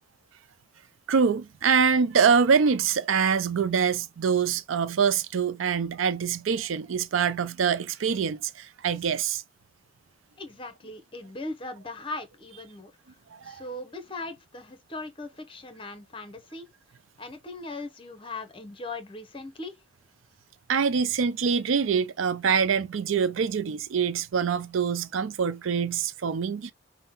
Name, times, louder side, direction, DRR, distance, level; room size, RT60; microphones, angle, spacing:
voice 1, 1.1-9.4 13.3-13.6 20.7-26.7, right 6 dB, 85° right, 0.5 m, -25 dB
voice 2, 10.4-12.9 13.4-16.7 17.2-19.7, left 2 dB, 25° left, 0.8 m, -39 dB
5.5 x 2.1 x 3.9 m
head